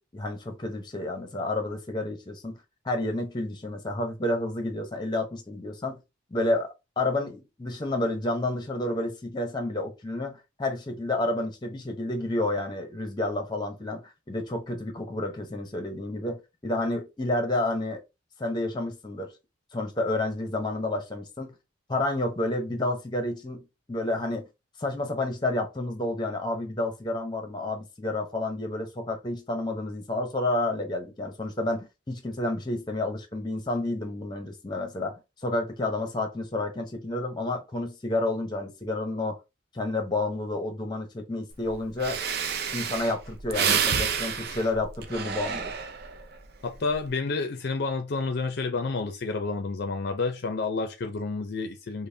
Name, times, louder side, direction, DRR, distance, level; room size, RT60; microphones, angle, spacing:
voice 1, 0.1-2.5 2.8-6.0 6.3-6.7 7.0-18.0 18.4-19.3 19.7-21.5 21.9-24.5 24.8-39.4 39.7-42.2 42.7-45.7, left 2 dB, 20° left, 0.7 m, -30 dB
Breathing, 41.7-41.8 42.0-46.2 46.7-47.1, right 7 dB, 55° right, 0.5 m, -29 dB
voice 2, 46.6-52.1, left 3 dB, 55° left, 0.4 m, -30 dB
5.2 x 2.1 x 2.6 m
head